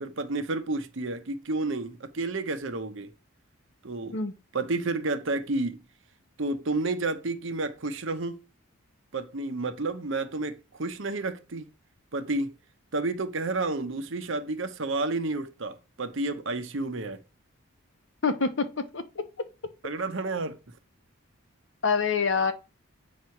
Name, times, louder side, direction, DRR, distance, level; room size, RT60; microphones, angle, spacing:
voice 1, 0.0-3.1 3.8-4.2 4.5-5.8 6.4-8.4 9.1-11.7 12.1-12.5 12.9-17.2 19.8-20.6, right 2 dB, 60° right, 0.8 m, -30 dB
voice 2, 18.2-19.2 21.8-22.5, left 5 dB, 55° left, 0.8 m, -26 dB
8.1 x 3.1 x 5.7 m
head